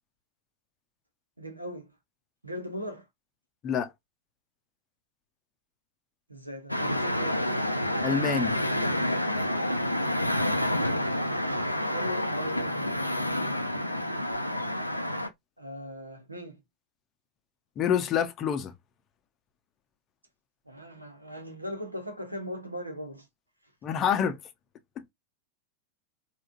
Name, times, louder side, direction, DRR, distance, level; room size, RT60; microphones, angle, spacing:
voice 1, 1.4-2.0 2.4-3.1 6.3-7.6 11.9-13.6 15.6-16.6 20.6-23.3, equal, 85° right, 0.8 m, -39 dB
sound 1, 6.7-15.3, left 1 dB, 90° left, 0.4 m, -28 dB
voice 2, 8.0-8.6 17.8-18.7 23.8-24.4 25.0-25.1, left 8 dB, 30° left, 0.6 m, -27 dB
3.5 x 2.3 x 2.5 m
figure-of-eight pair, 90°, 0 cm